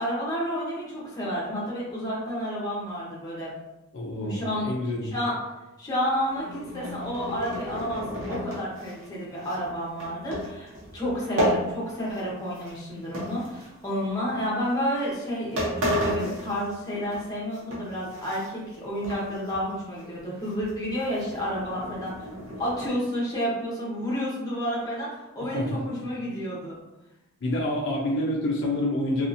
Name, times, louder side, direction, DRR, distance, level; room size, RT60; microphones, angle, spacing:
voice 1, 0.0-3.5 4.2-5.4 5.8-22.3 22.6-26.8, equal, 20° left, -6 dB, 0.8 m, -30 dB
voice 2, 3.9-5.1 25.4-25.8 27.4-29.3, left 1 dB, 60° left, -3 dB, 0.5 m, -28 dB
sound 1, 6.2-12.3 12.5-14.0 14.7-14.9 15.3-15.4 15.6-17.2 17.5-18.8 19.0-19.6 20.0-20.1 20.4-22.9, equal, 75° right, 0.9 m, -33 dB
2.7 x 2.4 x 2.5 m, 0.96 s
head